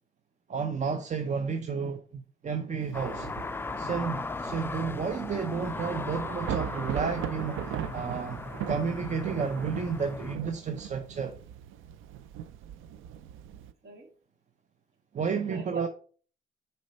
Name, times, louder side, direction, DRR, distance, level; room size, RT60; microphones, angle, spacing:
voice 1, 0.5-3.3 3.8-11.3 15.1-15.9, right 6 dB, 35° right, 0.6 m, -32 dB
voice 2, 1.3-1.8 13.8-14.1 15.4-15.9, right 2 dB, 55° right, 2.8 m, -44 dB
Thunder / Rain, 2.8-13.7, right 10 dB, 85° right, 0.5 m, -39 dB
sound 1, 2.9-10.4, left 3 dB, 10° left, 0.3 m, -37 dB
6.4 x 4.4 x 4.0 m
cardioid pair, 90°, 20 cm